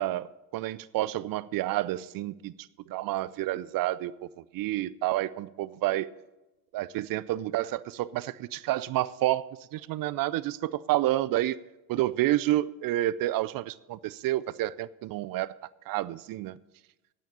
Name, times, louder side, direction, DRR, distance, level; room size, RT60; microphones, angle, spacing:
voice 1, 0.0-2.5 2.9-4.1 4.5-6.1 6.7-11.6 11.9-15.5 15.9-16.6, right 15 dB, 45° right, 0.5 m, -29 dB
9.1 x 8.7 x 8.6 m
hypercardioid pair, 75°, 49 cm